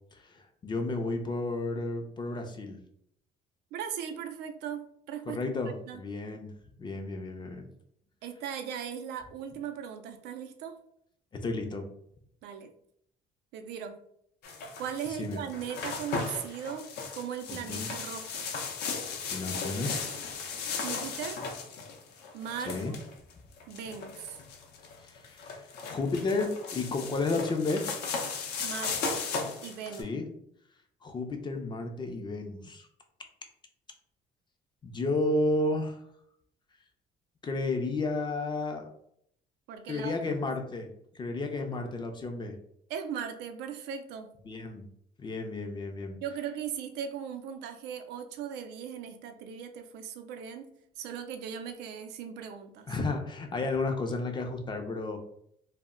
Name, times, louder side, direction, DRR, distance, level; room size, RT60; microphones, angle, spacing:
voice 1, 0.1-2.8 5.3-6.5 6.8-7.7 11.4-11.9 15.1-15.4 17.5-17.9 19.3-20.1 22.7-22.9 25.0-25.5 25.9-27.8 30.0-30.2 31.0-32.9 34.8-36.0 37.4-38.9 39.9-40.9 41.1-42.6 44.5-44.9 45.2-46.2 52.9-55.2, left 2 dB, 25° left, 4 dB, 0.4 m, -32 dB
voice 2, 3.7-5.4 5.9-6.0 8.2-10.8 12.4-12.7 13.5-14.0 14.8-18.5 20.8-21.4 22.3-23.0 23.7-24.4 28.6-29.2 29.6-30.1 39.7-40.3 42.9-44.3 46.2-52.9, right 8 dB, 80° right, 7 dB, 0.4 m, -38 dB
sound 1, 14.4-30.0, left 5 dB, 75° left, 0.6 m, -36 dB
2.1 x 2.0 x 3.6 m, 0.70 s
cardioid pair, 110°, 17 cm